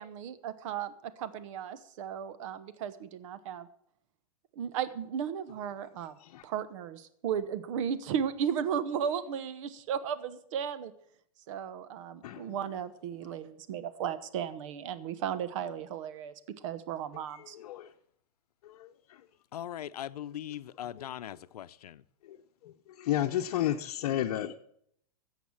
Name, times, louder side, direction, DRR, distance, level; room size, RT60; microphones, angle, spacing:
voice 1, 0.0-3.7 4.6-6.1 6.4-10.9 11.5-16.3 16.6-17.6, right 8 dB, 55° right, 1.1 m, -35 dB
voice 2, 12.2-12.6 17.5-17.9 18.7-18.9 22.3-22.4 22.6-22.7 23.0-24.5, left 12 dB, 60° left, 0.9 m, -31 dB
voice 3, 19.5-22.0, left 11 dB, 90° left, 0.7 m, -40 dB
14.0 x 8.1 x 7.2 m
hypercardioid pair, 145°, 19 cm